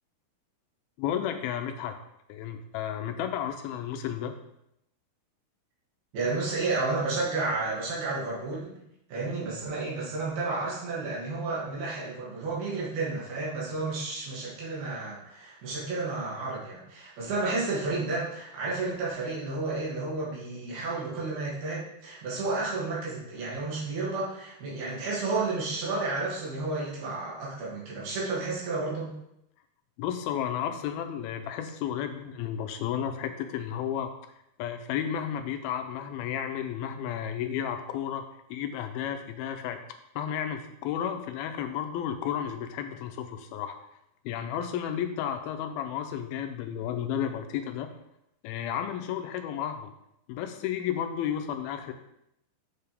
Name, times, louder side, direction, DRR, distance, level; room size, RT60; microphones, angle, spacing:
voice 1, 1.0-2.0 2.3-4.4 30.0-34.1 34.6-39.8 40.2-43.8 44.2-47.9 48.4-49.9 50.3-51.9, left 9 dB, 85° left, 6 dB, 2.5 m, -32 dB
voice 2, 6.1-8.8 9.1-29.1, right 3 dB, 75° right, -6 dB, 4.4 m, -31 dB
8.7 x 6.7 x 3.5 m, 0.80 s
omnidirectional pair, 4.4 m